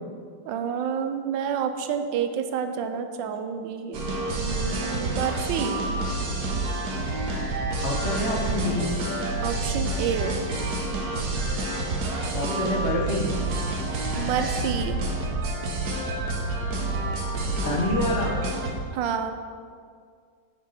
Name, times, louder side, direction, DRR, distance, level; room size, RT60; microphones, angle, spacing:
voice 1, 0.5-4.0 4.4-5.8 9.4-10.4 14.1-15.0 18.9-19.3, right 7 dB, 85° right, 7 dB, 1.3 m, -29 dB
sound 1, 3.9-18.7, right 2 dB, 60° right, 1.5 m, -28 dB
voice 2, 7.8-8.9 12.3-13.3 17.5-18.4, left 1 dB, 45° left, -2 dB, 1.1 m, -27 dB
6.6 x 5.8 x 5.6 m, 2.1 s
omnidirectional pair, 2.0 m